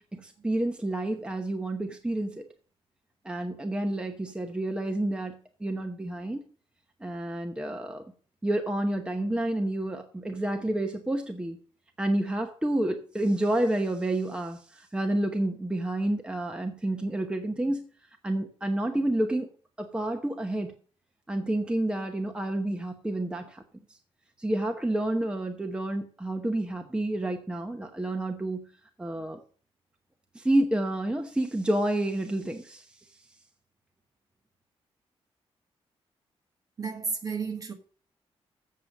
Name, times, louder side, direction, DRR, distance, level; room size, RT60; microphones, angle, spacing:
voice 1, 0.1-2.5 3.2-6.4 7.0-8.1 8.4-11.6 12.0-17.9 18.2-19.5 19.8-20.7 21.3-23.6 24.4-28.6 29.0-29.4 30.3-33.1, right 1 dB, 10° right, 0.9 m, -29 dB
voice 2, 36.8-37.7, right 5 dB, 35° right, 1.6 m, -32 dB
7.5 x 6.8 x 7.4 m
wide cardioid pair, 135°, 10 cm